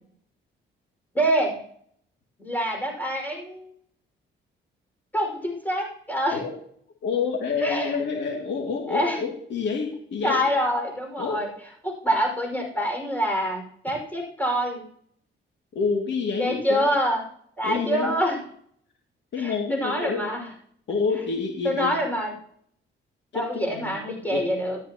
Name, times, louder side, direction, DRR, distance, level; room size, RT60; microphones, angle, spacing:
voice 1, 1.1-1.6 2.4-3.7 5.1-6.4 7.6-7.9 8.9-9.2 10.2-11.5 11.8-14.8 16.4-17.2 17.6-18.4 19.4-20.5 21.6-22.3 23.3-24.8, equal, 10° left, 0 dB, 5.4 m, -26 dB
voice 2, 7.0-10.4 11.2-11.4 15.7-16.9 17.6-18.2 19.3-20.2 20.9-22.0 23.3-23.4 23.7-24.0 24.3-24.5, left 5 dB, 65° left, 1 dB, 2.5 m, -28 dB
13.5 x 12.5 x 3.0 m, 0.63 s
cardioid pair, 90°, 20 cm